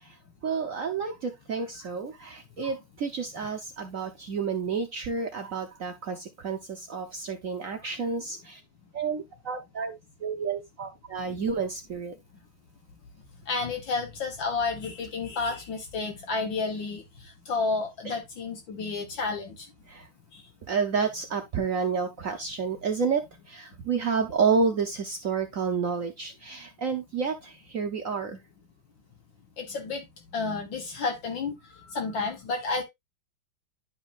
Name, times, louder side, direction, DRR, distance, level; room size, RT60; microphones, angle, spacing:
voice 1, 0.4-8.6 8.9-12.2 18.0-18.2 19.9-20.1 20.7-28.4, right 5 dB, 60° right, 0.8 m, -30 dB
voice 2, 13.5-19.7 20.3-20.4 29.6-30.1 30.3-32.8, left 4 dB, 65° left, 1.9 m, -31 dB
11.0 x 5.2 x 2.5 m
omnidirectional pair, 2.3 m